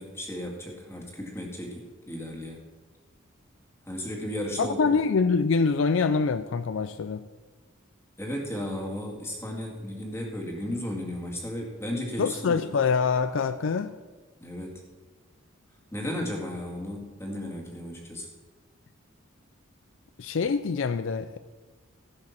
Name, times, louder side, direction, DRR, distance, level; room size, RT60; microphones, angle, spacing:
voice 1, 0.0-2.6 3.9-4.9 8.2-12.6 14.4-14.8 15.9-18.3, left 1 dB, 15° left, 0 dB, 2.1 m, -34 dB
voice 2, 4.6-7.2 12.2-13.9 20.2-21.4, left 5 dB, 65° left, 11 dB, 0.4 m, -25 dB
15.5 x 6.3 x 5.9 m, 1.3 s
head